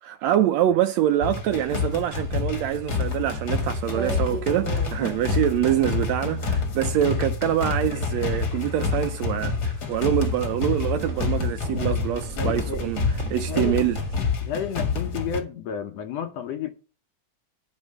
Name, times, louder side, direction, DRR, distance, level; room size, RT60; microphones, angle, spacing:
voice 1, 0.0-13.0 13.3-14.0, right 12 dB, 80° right, 1.6 m, -25 dB
sound 1, 1.2-15.4, left 4 dB, 45° left, 1.5 m, -28 dB
sound 2, 1.6-14.3, right 5 dB, 35° right, 1.2 m, -40 dB
voice 2, 12.3-12.8 13.5-13.9 14.4-16.7, left 8 dB, 70° left, 1.8 m, -32 dB
9.7 x 4.3 x 7.5 m
omnidirectional pair, 3.5 m